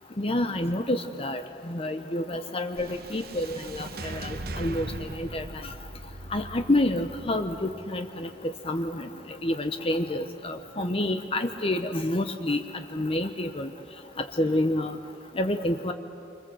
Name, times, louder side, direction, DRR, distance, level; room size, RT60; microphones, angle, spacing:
voice 1, 0.2-5.7 6.3-8.3 8.7-9.1 9.4-12.6 12.9-13.7 14.4-14.9 15.4-15.9, left 1 dB, 30° left, 6 dB, 0.9 m, -28 dB
sound 1, 2.7-11.1, right 2 dB, 55° right, 1.1 m, -41 dB
29.5 x 25.0 x 7.8 m, 2.7 s
head